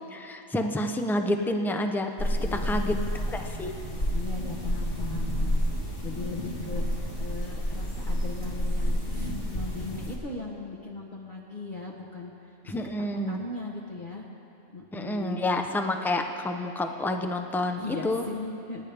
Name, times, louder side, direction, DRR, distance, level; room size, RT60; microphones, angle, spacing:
voice 1, 0.1-3.8 12.7-13.4 14.9-18.2, left 1 dB, ahead, 5 dB, 0.4 m, -29 dB
sound 1, 2.2-10.2, equal, 65° left, 2.2 m, -29 dB
voice 2, 2.4-3.2 4.1-5.6 6.0-12.8 13.3-14.3 14.7-15.5 17.8-18.8, left 3 dB, 40° left, -3 dB, 1.2 m, -39 dB
29.5 x 10.0 x 3.5 m, 2.8 s
omnidirectional pair, 1.3 m